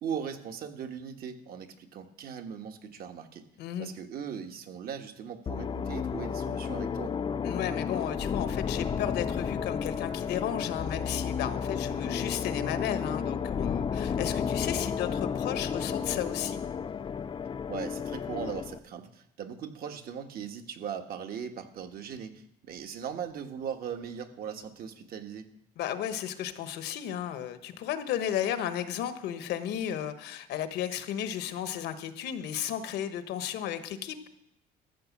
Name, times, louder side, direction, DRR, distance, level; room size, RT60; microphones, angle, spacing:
voice 1, 0.0-3.4 3.8-7.1 17.7-25.5, right 7 dB, 65° right, 6 dB, 1.4 m, -39 dB
voice 2, 3.6-3.9 7.4-16.6 25.8-34.2, left 10 dB, 80° left, 10 dB, 1.2 m, -34 dB
sound 1, 5.5-18.8, left 6 dB, 30° left, 0.5 m, -32 dB
13.5 x 6.6 x 7.2 m, 0.78 s
cardioid pair, 110°, 17 cm